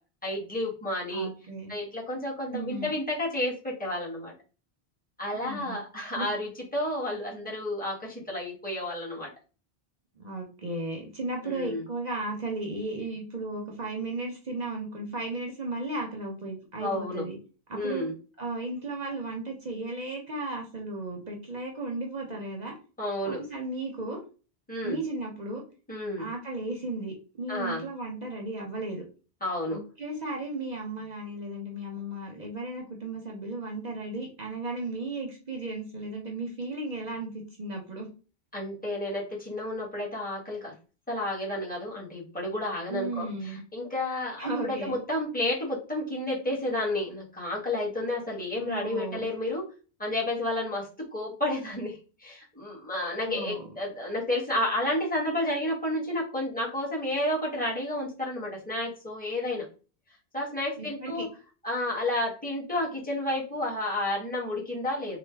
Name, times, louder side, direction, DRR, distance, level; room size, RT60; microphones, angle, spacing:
voice 1, 0.2-1.3 1.7-4.3 5.2-9.3 11.4-11.8 16.8-17.2 17.7-18.1 23.0-23.4 24.7-25.0 25.9-26.3 27.5-27.8 29.4-29.8 38.5-40.7 41.1-49.6 50.0-59.7 60.3-61.3 61.6-65.2, left 1 dB, 10° left, -4 dB, 1.0 m, -31 dB
voice 2, 1.1-1.7 2.5-2.9 5.3-5.8 6.1-6.3 10.2-17.4 17.7-18.1 18.4-22.7 23.2-24.2 24.8-25.6 26.2-29.0 29.7-38.1 42.9-43.6 44.4-44.9 48.6-49.3 53.2-53.7 60.8-61.3, right 2 dB, 50° right, 1 dB, 0.7 m, -35 dB
3.2 x 2.1 x 3.3 m, 0.35 s
omnidirectional pair, 1.1 m